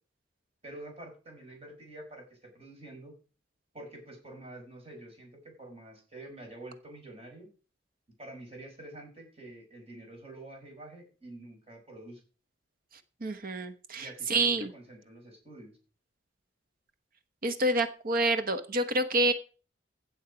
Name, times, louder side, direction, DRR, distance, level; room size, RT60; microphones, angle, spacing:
voice 1, 0.6-3.1 3.7-7.5 8.2-12.2 13.9-15.8, right 1 dB, 35° right, 2 dB, 5.4 m, -47 dB
voice 2, 13.2-14.7 17.4-19.3, right 2 dB, 50° right, 10 dB, 1.0 m, -28 dB
16.0 x 7.1 x 5.1 m, 0.37 s
head